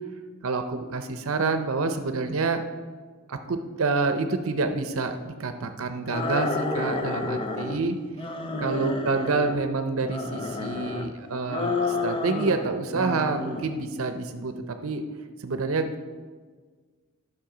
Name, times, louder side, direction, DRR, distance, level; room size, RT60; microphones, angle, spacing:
voice 1, 0.4-2.6 3.3-8.0 8.6-15.0 15.4-16.0, right 3 dB, 75° right, 8 dB, 0.6 m, -28 dB
sound 1, 6.1-7.8 8.2-9.6 10.0-11.1 11.5-12.7 12.9-13.7, left 3 dB, 25° left, 0.6 m, -30 dB
10.5 x 6.1 x 4.9 m, 1.5 s
head